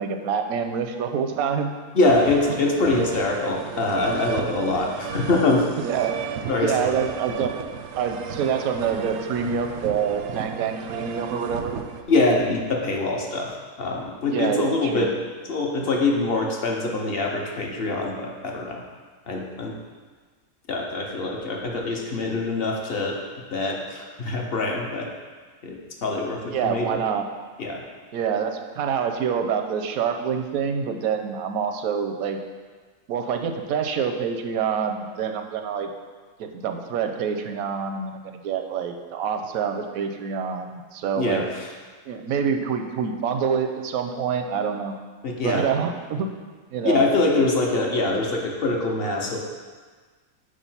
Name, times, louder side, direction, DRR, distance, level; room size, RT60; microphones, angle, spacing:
voice 1, 0.0-1.7 5.8-6.1 6.6-7.5 8.0-11.8 14.3-15.1 26.5-27.2 28.1-32.4 33.1-35.9 36.4-41.4 42.1-44.9 45.4-46.3 46.7-47.0, right 7 dB, 80° right, 5 dB, 1.0 m, -26 dB
voice 2, 1.9-5.7 6.5-7.0 12.1-15.1 15.5-18.8 19.3-19.8 20.7-23.2 23.5-25.1 25.6-27.0 27.6-27.8 41.2-41.7 45.2-45.6 46.8-49.4, left 2 dB, 50° left, 0 dB, 0.9 m, -24 dB
sound 1, 2.1-12.0, right 7 dB, 65° right, 0.7 m, -33 dB
5.1 x 4.8 x 5.5 m, 1.5 s
omnidirectional pair, 1.5 m